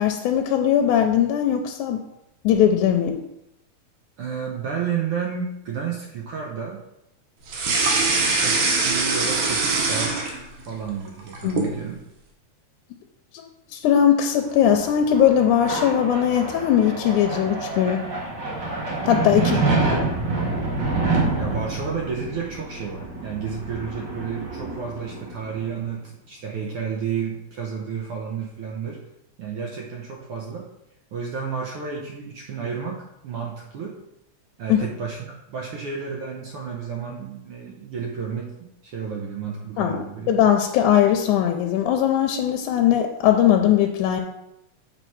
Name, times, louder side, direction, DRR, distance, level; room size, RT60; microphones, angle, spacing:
voice 1, 0.0-2.0 2.4-3.2 11.4-11.6 13.7-18.0 19.1-19.6 34.7-34.8 39.8-44.2, left 9 dB, 85° left, 4 dB, 2.1 m, -19 dB
voice 2, 4.2-6.8 7.8-12.0 19.3-19.8 21.4-29.0 29.4-30.7 31.1-34.0 34.6-40.3, right 6 dB, 70° right, -1 dB, 1.4 m, -31 dB
sound 1, 7.5-10.7 11.1-11.8, right 3 dB, 85° right, 2.6 m, -22 dB
sound 2, 14.5-25.8, right 3 dB, 45° right, 1.6 m, -27 dB
7.9 x 4.3 x 4.6 m, 0.86 s
omnidirectional pair, 3.5 m